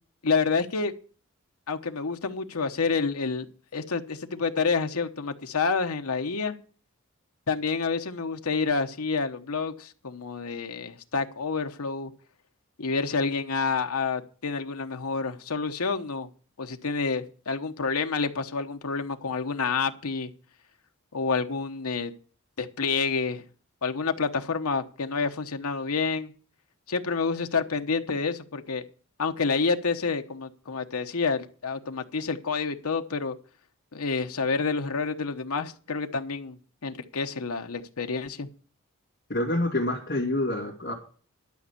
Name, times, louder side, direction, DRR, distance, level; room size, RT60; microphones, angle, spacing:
voice 1, 0.2-0.9 1.7-3.5 3.7-6.5 7.5-12.1 12.8-16.3 16.6-20.3 21.1-22.1 22.6-23.4 23.8-26.3 26.9-28.8 29.2-33.4 33.9-36.6 36.8-38.5, left 4 dB, 85° left, 1.0 m, -28 dB
voice 2, 39.3-40.9, left 1 dB, 45° left, 2.6 m, -27 dB
12.0 x 5.3 x 8.4 m
head